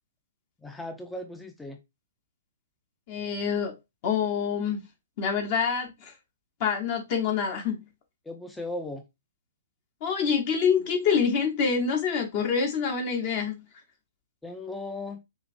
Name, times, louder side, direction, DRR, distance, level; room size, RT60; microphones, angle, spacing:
voice 1, 0.6-1.8 8.2-9.0 14.4-15.2, left 2 dB, 5° left, 0.5 m, -37 dB
voice 2, 3.1-3.7 4.0-4.8 5.2-6.1 6.6-7.8 10.0-13.6, left 6 dB, 40° left, 0.8 m, -26 dB
5.0 x 2.5 x 2.5 m
figure-of-eight pair, 115°, 0 cm